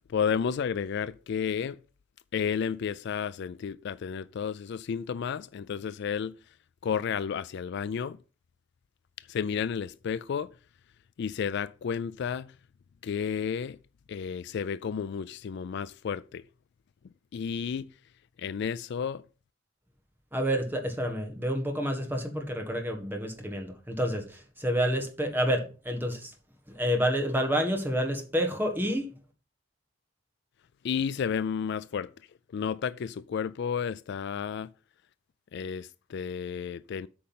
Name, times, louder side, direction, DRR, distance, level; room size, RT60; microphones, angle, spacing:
voice 1, 0.1-1.8 2.3-6.3 6.8-8.2 9.3-10.5 11.2-12.5 13.0-13.8 14.1-16.4 17.3-17.9 18.4-19.2 30.8-32.1 32.5-34.7 35.5-37.1, left 7 dB, 55° left, 0.3 m, -32 dB
voice 2, 20.3-26.3 26.7-29.1, equal, 10° right, 1.5 m, -29 dB
8.6 x 5.1 x 5.6 m
head